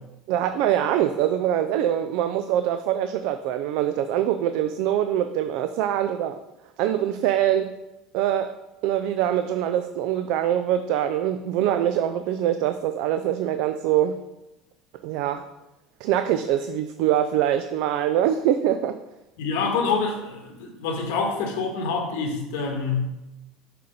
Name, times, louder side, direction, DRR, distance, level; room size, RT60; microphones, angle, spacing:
voice 1, 0.3-6.4 6.8-7.7 8.1-8.5 8.8-14.2 15.0-15.5 16.0-19.0, right 11 dB, 55° right, 9 dB, 0.3 m, -24 dB
voice 2, 19.4-23.1, left 4 dB, 85° left, 2 dB, 1.5 m, -26 dB
6.6 x 4.3 x 5.2 m, 0.97 s
cardioid pair, 180°, 0 cm